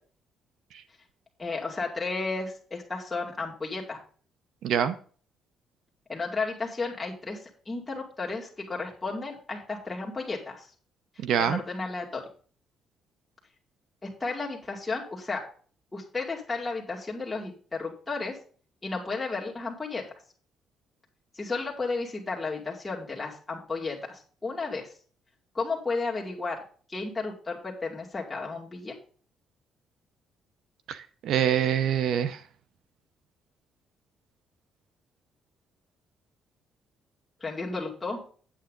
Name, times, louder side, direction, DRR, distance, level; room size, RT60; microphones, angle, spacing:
voice 1, 1.4-4.0 6.1-7.4 7.7-10.7 11.4-12.2 14.0-15.4 15.9-18.4 18.8-20.0 21.3-24.9 25.5-26.6 26.9-28.9 37.4-38.2, left 3 dB, 15° left, -2 dB, 2.3 m, -33 dB
voice 2, 4.6-4.9 11.2-11.6 30.9-32.4, right 9 dB, 70° right, 13 dB, 0.7 m, -25 dB
8.8 x 8.3 x 3.8 m, 0.42 s
cardioid pair, 155°, 0 cm